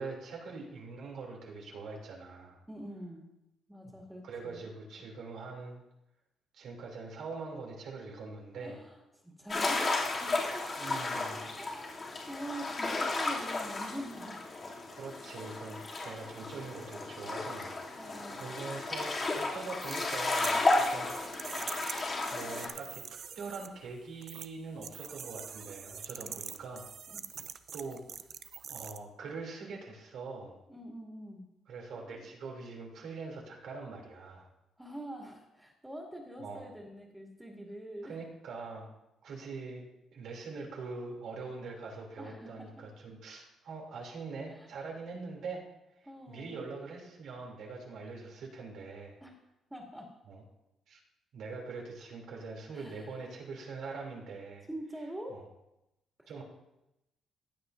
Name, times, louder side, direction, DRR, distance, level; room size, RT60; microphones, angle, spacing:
voice 1, 0.0-2.6 4.2-5.8 6.5-8.8 10.8-11.5 14.9-18.0 18.3-20.6 20.9-21.1 21.7-26.9 27.7-28.0 28.7-30.6 31.7-34.5 36.4-36.7 38.1-38.9 39.2-45.6 46.3-49.2 50.3-50.4 50.9-51.0 51.3-54.7 55.3-55.4 56.3-56.4, right 4 dB, 75° right, -1 dB, 2.8 m, -43 dB
voice 2, 2.7-3.3 3.7-4.6 8.6-9.0 9.2-14.5 18.0-18.4 26.2-26.3 27.1-27.2 30.7-31.5 31.9-32.2 34.8-38.2 42.2-42.8 44.5-44.7 46.0-46.7 49.2-49.3 49.7-50.1 52.7-53.2 54.7-55.4, right 1 dB, 5° right, -2 dB, 2.4 m, -45 dB
sound 1, 9.5-22.7, left 3 dB, 40° left, 2.6 m, -33 dB
sound 2, 19.8-23.7 24.2-24.5 24.8-29.0, right 7 dB, 60° right, 0.5 m, -44 dB
15.0 x 8.9 x 2.6 m, 0.90 s
cardioid pair, 90°, 0 cm